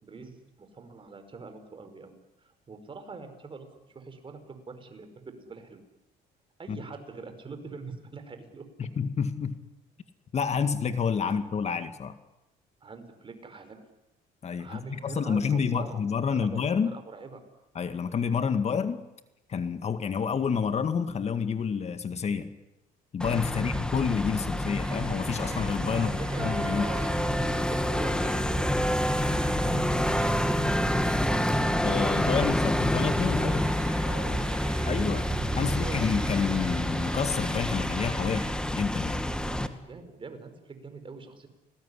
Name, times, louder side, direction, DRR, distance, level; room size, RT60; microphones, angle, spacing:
voice 1, 0.0-3.7 4.0-5.8 6.6-8.7 11.2-11.3 12.8-13.8 14.6-16.0 16.3-17.4 23.4-23.9 25.9-28.9 29.2-30.0 34.0-34.9 35.6-36.0 39.2-41.5, right 4 dB, 30° right, 8 dB, 5.2 m, -44 dB
voice 2, 8.8-9.6 10.3-12.1 14.4-17.0 17.8-19.0 19.5-22.5 23.1-26.1 26.4-26.9 31.8-33.7 34.9-35.3 35.6-39.3, left 6 dB, 40° left, 9 dB, 1.9 m, -29 dB
sound 1, 23.2-39.7, equal, 5° left, 2.1 m, -28 dB
sound 2, 24.8-38.5, right 8 dB, 75° right, 4.8 m, -45 dB
29.5 x 20.0 x 10.0 m, 0.94 s
cardioid pair, 110°, 17 cm